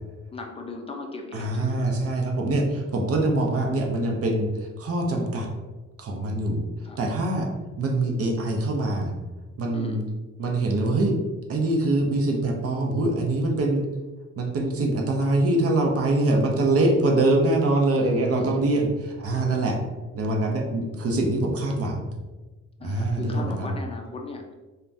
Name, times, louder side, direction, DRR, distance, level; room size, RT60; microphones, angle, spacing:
voice 1, 0.3-2.1 6.8-7.0 9.7-10.0 16.3-16.4 17.9-18.6 22.8-24.6, left 3 dB, 20° left, 2 dB, 0.4 m, -37 dB
voice 2, 1.3-5.5 6.0-6.6 7.0-7.5 7.8-9.1 9.6-10.0 10.4-11.2 11.5-13.9 14.4-19.8 20.2-22.1 22.8-23.7, right 2 dB, 55° right, 1 dB, 0.6 m, -24 dB
3.3 x 2.2 x 2.5 m, 1.2 s
cardioid pair, 120°, 29 cm